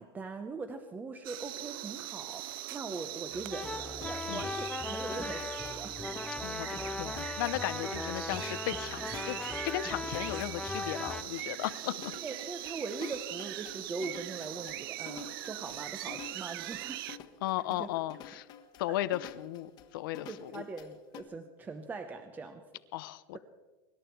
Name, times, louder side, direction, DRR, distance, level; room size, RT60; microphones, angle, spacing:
voice 1, 0.0-6.1 12.2-17.0 17.7-17.9 18.9-19.0 20.3-22.6 23.3-23.4, right 4 dB, 15° right, 8 dB, 0.8 m, -41 dB
sound 1, 1.2-17.2, right 15 dB, 90° right, 0.5 m, -41 dB
sound 2, 3.3-11.2, left 3 dB, 5° left, 0.4 m, -39 dB
sound 3, 3.6-21.2, left 8 dB, 40° left, 1.4 m, -50 dB
voice 2, 6.4-12.1 17.4-18.5 18.8-20.6 22.9-23.4, left 15 dB, 75° left, 16 dB, 0.8 m, -36 dB
24.5 x 11.5 x 4.6 m, 1.2 s
supercardioid pair, 150°, 11 cm